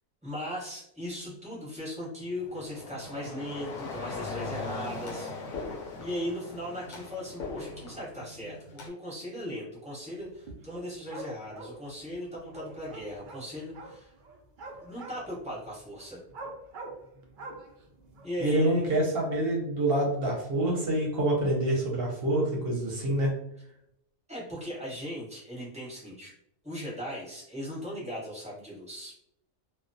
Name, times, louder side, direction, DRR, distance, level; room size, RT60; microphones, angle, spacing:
voice 1, 0.2-14.1 14.8-16.2 18.2-18.8 24.3-26.3 26.6-29.1, left 1 dB, 5° right, -7 dB, 0.9 m, -38 dB
sound 1, 2.2-8.9, left 3 dB, 75° left, 1.0 m, -39 dB
sound 2, 10.2-10.7 11.1-19.0, right 3 dB, 75° right, 0.4 m, -46 dB
voice 2, 18.4-23.3, right 1 dB, 55° right, -2 dB, 0.8 m, -26 dB
2.2 x 2.2 x 2.5 m, 0.78 s
omnidirectional pair, 1.4 m